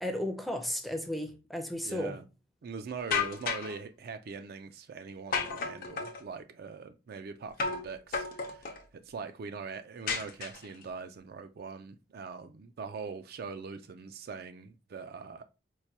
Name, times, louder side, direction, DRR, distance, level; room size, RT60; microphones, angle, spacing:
voice 1, 0.0-2.2, left 1 dB, ahead, 0.5 m, -34 dB
voice 2, 1.8-2.3 2.6-15.4, right 5 dB, 60° right, 0.4 m, -42 dB
sound 1, 3.1-3.8 5.3-6.2 7.6-7.9 8.1-8.8 10.1-10.8, left 5 dB, 55° left, 0.6 m, -32 dB
4.5 x 2.2 x 2.7 m
head